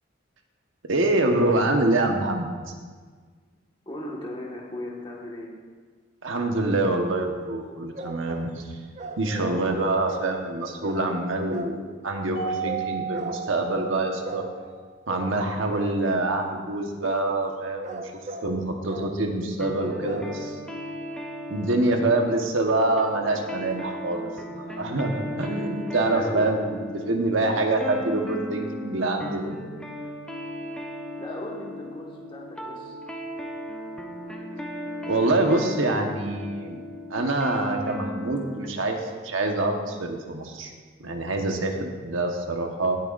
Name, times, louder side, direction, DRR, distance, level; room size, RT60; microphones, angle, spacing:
voice 1, 0.8-2.5 6.2-8.8 9.2-14.4 15.1-18.1 18.4-20.5 21.5-29.6 35.1-36.8 37.1-40.7 41.0-43.0, right 2 dB, 85° right, 3 dB, 1.2 m, -25 dB
voice 2, 3.8-5.5 19.6-20.4 26.0-26.5 31.2-33.0, left 1 dB, 25° left, -2 dB, 1.6 m, -37 dB
sound 1, 7.9-8.6 9.0-9.7 10.1-10.4 10.8-11.1 11.5-11.7 12.6-12.9 13.1-13.4 14.2-14.5 15.1-15.4 15.7-16.1 17.6-18.5 18.9-19.1 20.0-20.3, right 2 dB, 35° right, 0.7 m, -37 dB
Mallet percussion, 12.4-14.8, right 6 dB, 65° left, 1.9 m, -33 dB
sound 2, 19.6-38.7, left 1 dB, 5° left, 0.8 m, -36 dB
16.5 x 9.2 x 2.6 m, 1.5 s
head